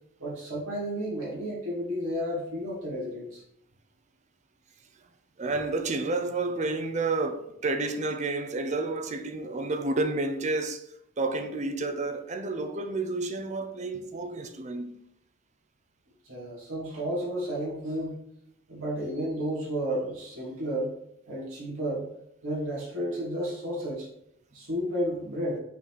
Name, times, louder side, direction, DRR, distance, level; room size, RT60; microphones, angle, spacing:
voice 1, 0.2-3.4 16.2-18.1 18.7-20.9 21.3-22.0 22.4-24.1 24.5-25.6, equal, 80° right, 2.4 m, -32 dB
voice 2, 5.4-15.0, right 3 dB, 35° right, 0.6 m, -30 dB
5.6 x 3.8 x 4.7 m
head